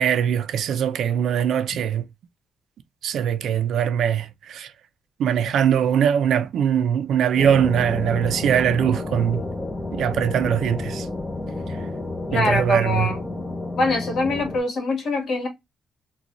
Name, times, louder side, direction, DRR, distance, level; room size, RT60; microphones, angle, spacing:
voice 1, 0.0-2.0 3.0-4.7 5.2-9.4 9.9-11.1 12.3-13.1, right 9 dB, 75° right, 0.5 m, -21 dB
sound 1, 7.4-14.6, left 2 dB, 10° left, 0.7 m, -30 dB
voice 2, 12.3-13.2 13.8-15.5, left 2 dB, 55° left, 1.5 m, -24 dB
3.9 x 2.3 x 2.9 m
cardioid pair, 135°, 0 cm